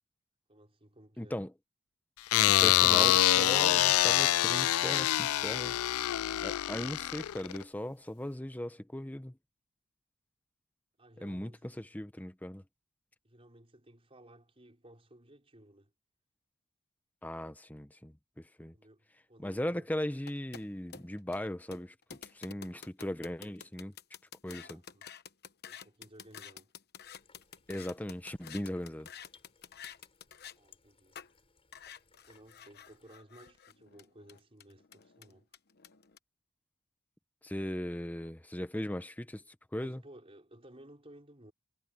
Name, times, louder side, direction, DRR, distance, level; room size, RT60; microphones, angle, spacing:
voice 1, 0.5-1.4 4.4-5.1 11.0-11.8 13.2-15.9 18.7-19.9 24.5-25.1 25.7-26.7 30.5-31.2 32.2-35.5 39.8-41.5, right 1 dB, 25° right, 5.4 m, -57 dB
voice 2, 1.2-1.5 2.5-5.8 6.4-9.4 11.2-12.6 17.2-18.7 19.4-21.9 22.3-23.9 24.4-24.8 27.7-29.1 37.4-40.0, left 1 dB, 10° left, 0.9 m, -38 dB
sound 1, 2.3-7.6, left 14 dB, 80° left, 0.4 m, -26 dB
sound 2, 20.2-30.6 31.1-31.3 31.7-36.2, left 8 dB, 50° left, 1.0 m, -50 dB
sound 3, 27.0-33.1, left 4 dB, 25° left, 6.7 m, -66 dB
head